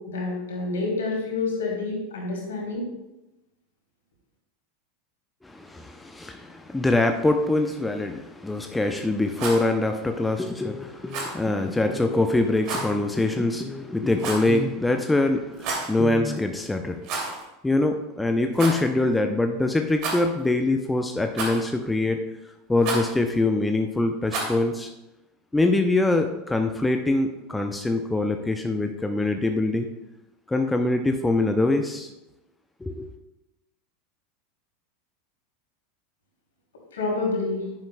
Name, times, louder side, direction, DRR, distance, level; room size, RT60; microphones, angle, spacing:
voice 1, 0.1-2.8 36.9-37.6, left 3 dB, 70° left, -1 dB, 2.8 m, -28 dB
voice 2, 5.4-17.2 17.6-22.2 22.7-24.9 25.5-29.9 30.5-32.1 32.8-33.1, left 2 dB, 10° left, 5 dB, 0.6 m, -24 dB
Rattle, 9.2-9.6 11.1-11.4 12.6-12.9 14.2-14.6 15.5-15.9 17.0-17.4 17.7-17.8 18.5-18.8 20.0-20.5 21.4-21.8 22.8-23.1 24.3-24.6, right 3 dB, 50° right, 2.5 m, -30 dB
10.5 x 9.6 x 2.2 m, 0.97 s
figure-of-eight pair, 80°, 0 cm